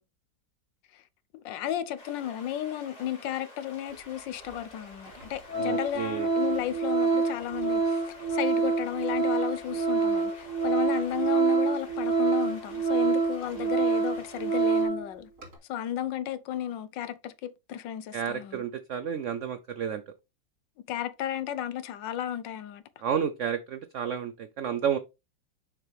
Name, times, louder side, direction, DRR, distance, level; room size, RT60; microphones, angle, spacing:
voice 1, 1.3-15.3 15.7-18.6 20.9-22.8, left 11 dB, 80° left, 1.4 m, -34 dB
sound 1, 2.0-14.9, left 1 dB, 50° left, 3.7 m, -50 dB
Organ, 4.4-4.5 5.1-5.2 5.5-15.1 15.4-15.5, right 4 dB, 40° right, 3.7 m, -26 dB
voice 2, 5.5-6.3 18.1-20.0 23.0-25.0, right 8 dB, 90° right, 0.6 m, -31 dB
6.7 x 5.8 x 3.4 m
omnidirectional pair, 2.0 m